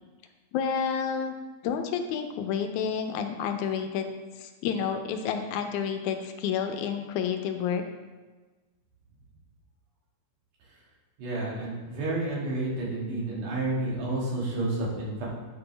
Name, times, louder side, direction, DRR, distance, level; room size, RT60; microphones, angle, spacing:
voice 1, 0.5-1.4 1.6-4.1 4.4-7.8, left 7 dB, 80° left, 6 dB, 1.9 m, -30 dB
voice 2, 11.2-15.3, right 2 dB, 80° right, -5 dB, 3.4 m, -30 dB
10.0 x 6.2 x 3.3 m, 1.3 s
omnidirectional pair, 3.5 m